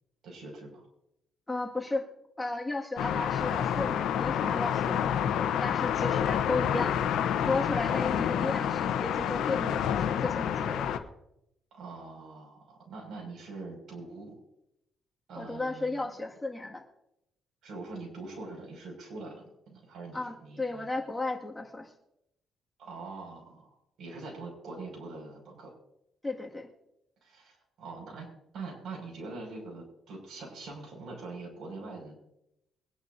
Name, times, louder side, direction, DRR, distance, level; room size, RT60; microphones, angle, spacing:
voice 1, 0.2-0.8 6.3-6.9 11.7-14.4 15.3-16.0 17.6-20.9 22.8-25.7 27.2-32.1, right 3 dB, 70° right, 0 dB, 6.1 m, -43 dB
voice 2, 1.5-2.0 2.4-7.0 7.5-10.9 15.4-16.8 20.1-21.9 26.2-26.7, left 2 dB, 15° left, 0 dB, 2.1 m, -34 dB
sound 1, 3.0-11.0, left 9 dB, 85° left, 1.0 m, -28 dB
23.0 x 11.0 x 2.8 m, 0.81 s
cardioid pair, 90°, 0 cm